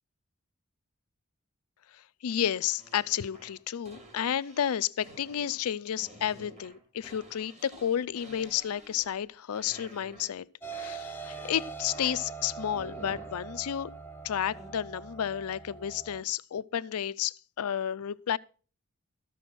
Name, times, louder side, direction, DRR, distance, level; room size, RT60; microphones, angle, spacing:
voice 1, 1.9-10.5 10.7-13.9 14.2-18.4, left 9 dB, 80° left, 0.4 m, -31 dB
sound 1, 2.8-9.3 9.5-10.4 10.7-12.3 12.7-13.4 14.5-14.7, right 1 dB, 30° right, 1.9 m, -51 dB
sound 2, 10.6-16.2, right 5 dB, 10° left, 0.6 m, -42 dB
14.0 x 6.2 x 5.7 m
head